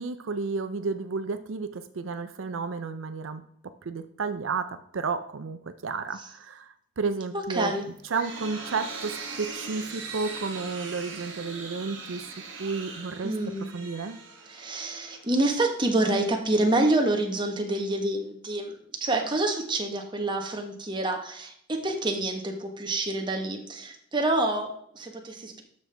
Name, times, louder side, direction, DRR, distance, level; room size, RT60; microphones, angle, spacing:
voice 1, 0.0-3.4 3.9-7.7 8.1-12.3 12.6-13.3 13.7-14.2, right 4 dB, 80° right, 10 dB, 0.5 m, -32 dB
voice 2, 7.3-7.8 13.2-13.6 14.5-18.7 19.0-25.6, right 2 dB, 25° right, 3 dB, 1.2 m, -27 dB
sound 1, 7.8-15.6, right 4 dB, 60° right, 1.6 m, -40 dB
12.5 x 5.3 x 3.4 m, 0.68 s
head